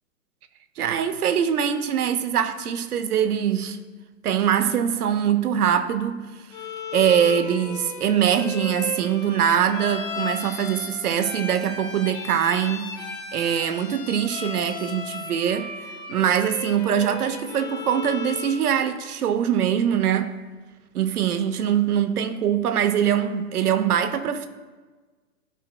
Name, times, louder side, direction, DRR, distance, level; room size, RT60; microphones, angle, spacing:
voice 1, 0.8-3.8 4.2-6.3 6.9-12.9 13.3-15.7 16.1-20.4 20.9-24.5, right 9 dB, 75° right, 0.8 m, -23 dB
Bowed string instrument, 6.5-18.7, left 4 dB, 50° left, 2.0 m, -35 dB
12.5 x 4.7 x 2.2 m
hypercardioid pair, 130°, 46 cm